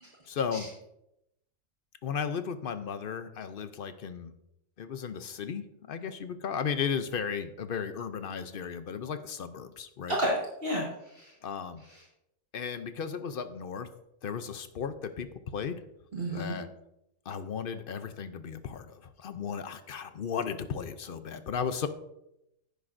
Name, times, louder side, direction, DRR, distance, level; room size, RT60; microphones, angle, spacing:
voice 1, 0.3-0.7 2.0-4.3 4.8-10.2 11.4-11.8 12.5-13.9 14.2-15.3 15.5-15.8 16.3-16.7 17.3-21.9, left 6 dB, 55° left, 11 dB, 0.7 m, -35 dB
voice 2, 10.1-11.3 11.9-12.0 16.1-16.6, equal, 45° right, -3 dB, 1.8 m, -32 dB
10.5 x 9.8 x 2.6 m, 0.83 s
omnidirectional pair, 1.4 m